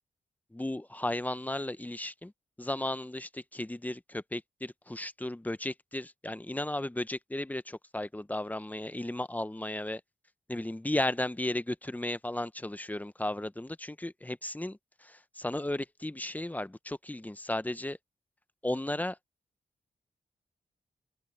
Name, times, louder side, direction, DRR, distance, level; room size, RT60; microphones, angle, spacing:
voice 1, 0.5-2.3 2.6-10.0 10.5-18.0 18.6-19.2, left 1 dB, 10° left, 0.8 m, -35 dB
open air
cardioid pair, 75°, 17 cm